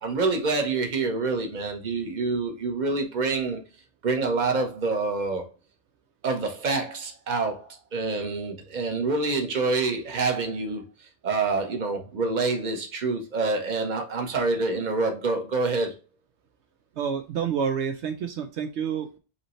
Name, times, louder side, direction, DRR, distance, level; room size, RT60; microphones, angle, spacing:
voice 1, 0.0-3.6 4.0-5.5 6.2-15.9, right 3 dB, 45° right, 1.0 m, -27 dB
voice 2, 17.0-19.2, right 7 dB, 75° right, 0.9 m, -28 dB
5.5 x 2.9 x 3.0 m
omnidirectional pair, 1.2 m